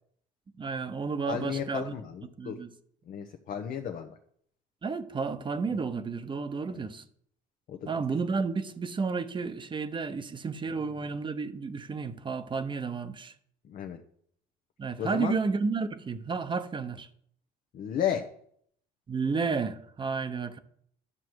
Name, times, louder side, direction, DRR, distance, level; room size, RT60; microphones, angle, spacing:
voice 1, 0.6-1.9 2.4-2.7 4.8-7.0 7.9-13.3 14.8-17.1 19.1-20.6, right 4 dB, 30° right, 0.9 m, -32 dB
voice 2, 1.3-2.6 3.1-4.2 6.7-6.9 7.7-7.9 10.7-10.8 13.7-14.0 15.0-15.4 17.7-18.3, left 9 dB, 60° left, 0.9 m, -33 dB
11.0 x 6.2 x 4.7 m
supercardioid pair, 75°, 16 cm